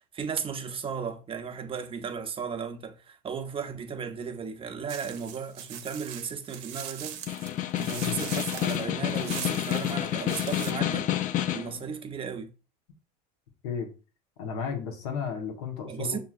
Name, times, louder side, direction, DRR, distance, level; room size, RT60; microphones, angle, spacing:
voice 1, 0.0-7.2 7.7-11.1 11.5-12.5 15.9-16.2, right 6 dB, 30° right, 0.7 m, -35 dB
sound 1, 4.9-10.7, right 10 dB, 70° right, 0.7 m, -41 dB
Snare drum, 7.1-11.8, left 12 dB, 45° left, 0.4 m, -29 dB
voice 2, 14.4-16.2, left 7 dB, 90° left, 1.0 m, -33 dB
6.0 x 2.7 x 2.4 m
supercardioid pair, 105°, 19 cm